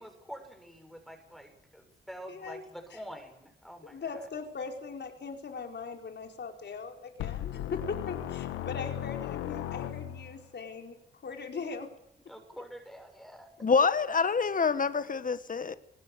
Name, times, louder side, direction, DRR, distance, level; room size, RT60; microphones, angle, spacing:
voice 1, 0.0-4.2 12.3-13.5, equal, ahead, 6.8 m, -47 dB
voice 2, 2.3-2.6 2.9-3.0 3.9-11.0 11.2-11.9, left 5 dB, 60° left, 4.8 m, -40 dB
sound 1, 7.2-10.4, left 11 dB, 85° left, 1.2 m, -36 dB
voice 3, 13.6-15.7, left 5 dB, 40° left, 1.5 m, -26 dB
23.5 x 19.0 x 8.3 m
hypercardioid pair, 40°, 20 cm